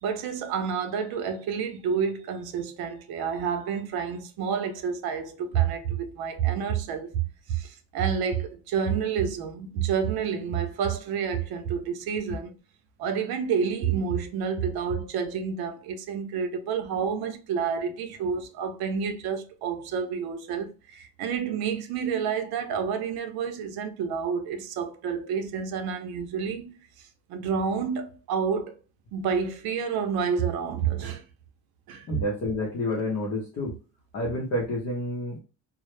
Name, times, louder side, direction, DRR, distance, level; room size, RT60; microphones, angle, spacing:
voice 1, 0.0-12.6 13.0-28.7 29.1-31.2 31.9-32.1, right 7 dB, 85° right, 0.5 m, -29 dB
voice 2, 32.1-33.7 34.1-35.4, left 1 dB, 45° left, 0.6 m, -29 dB
2.0 x 2.0 x 3.0 m
cardioid pair, 150°, 37 cm